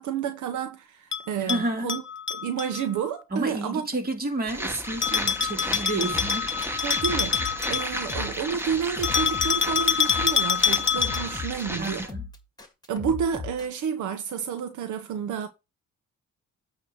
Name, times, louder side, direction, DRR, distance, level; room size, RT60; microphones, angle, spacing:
voice 1, 0.0-2.0 2.3-3.9 6.8-7.4 7.7-12.0 12.9-15.5, right 7 dB, 80° right, 1.0 m, -30 dB
Bell, 1.1-2.8 5.0-8.3 9.0-11.4, left 7 dB, 40° left, 0.8 m, -26 dB
voice 2, 1.4-1.9 3.3-7.0 11.8-12.3, right 2 dB, 30° right, 2.3 m, -31 dB
sound 1, 4.5-12.1, equal, 10° right, 1.2 m, -33 dB
sound 2, 6.1-13.9, left 5 dB, 15° left, 1.8 m, -37 dB
8.5 x 3.0 x 6.4 m
cardioid pair, 90°, 30 cm